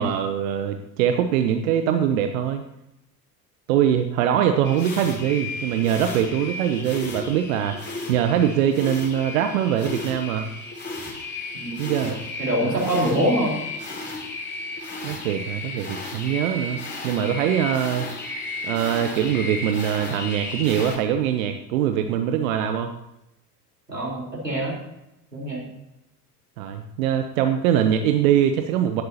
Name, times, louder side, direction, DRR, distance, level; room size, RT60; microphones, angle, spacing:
voice 1, 0.0-2.6 3.7-7.8 8.1-10.5 11.8-12.2 12.6-13.0 15.0-18.1 18.6-22.9 26.6-29.0, right 9 dB, 55° right, 7 dB, 1.0 m, -23 dB
sound 1, 4.6-21.0, left 2 dB, 20° left, 3.3 m, -34 dB
voice 2, 11.6-12.1 12.4-13.5 23.9-24.8 25.3-25.7, equal, 90° right, -4 dB, 4.2 m, -24 dB
17.5 x 11.5 x 2.9 m, 0.88 s
figure-of-eight pair, 70°, 48 cm